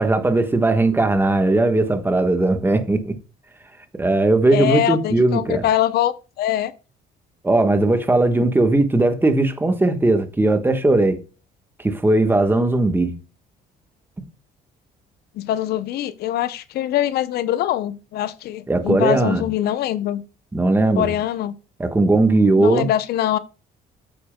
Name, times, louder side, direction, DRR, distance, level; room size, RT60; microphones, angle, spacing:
voice 1, 0.0-3.2 3.9-5.6 7.4-11.2 11.8-13.1 18.7-19.5 20.5-21.1 21.8-22.9, right 2 dB, 10° right, 1.2 m, -18 dB
voice 2, 4.5-6.7 15.4-20.2 21.0-21.5 22.6-23.4, left 12 dB, 70° left, 0.6 m, -23 dB
8.8 x 8.3 x 2.2 m
cardioid pair, 110°, 17 cm